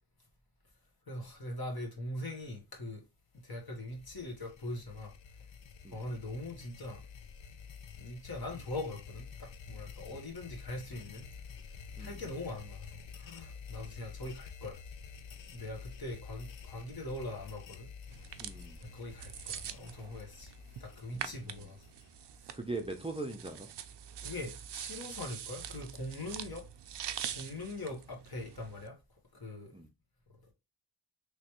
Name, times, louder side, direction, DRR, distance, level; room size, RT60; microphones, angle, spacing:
voice 1, 1.1-3.0 3.4-5.1 5.9-7.0 8.0-11.3 12.0-14.8 15.5-17.9 18.2-18.3 18.8-20.5 20.8-21.8 24.2-26.6 27.3-29.0 29.3-29.7, left 1 dB, 45° left, 1.4 m, -42 dB
sound 1, 3.4-22.4, left 6 dB, 65° left, 0.6 m, -50 dB
sound 2, 18.1-28.9, right 9 dB, 60° right, 0.5 m, -45 dB
voice 2, 18.4-18.8 21.1-21.7 22.5-23.7 29.7-29.9, right 2 dB, 10° right, 0.5 m, -41 dB
3.4 x 3.1 x 3.0 m
cardioid pair, 45°, 49 cm